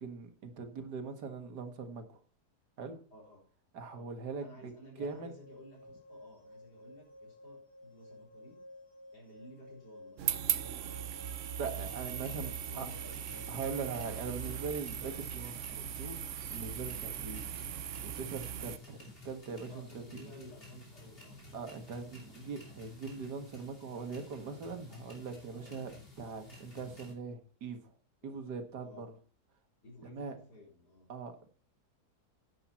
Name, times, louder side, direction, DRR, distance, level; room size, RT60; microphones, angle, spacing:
voice 1, 0.0-2.2 2.8-3.0 3.7-4.7 5.0-5.3 11.6-12.5 12.8-12.9 13.5-16.2 16.5-17.4 18.0-20.2 21.5-27.9 28.2-29.1 30.0-30.4 31.1-31.5, right 5 dB, 85° right, 7 dB, 2.2 m, -41 dB
voice 2, 4.4-8.6 9.1-10.6 12.5-13.2 14.1-14.2 19.7-21.4 22.2-22.3 25.5-25.7 28.2-28.4 28.8-29.1 29.8-31.1, equal, 75° left, -3 dB, 4.7 m, -54 dB
sound 1, 5.1-14.7, left 2 dB, 35° right, 4.4 m, -54 dB
sound 2, 10.2-18.8, right 9 dB, 60° right, 0.9 m, -38 dB
sound 3, 11.7-27.1, left 2 dB, 35° left, 3.1 m, -53 dB
10.0 x 9.1 x 4.3 m, 0.41 s
omnidirectional pair, 1.7 m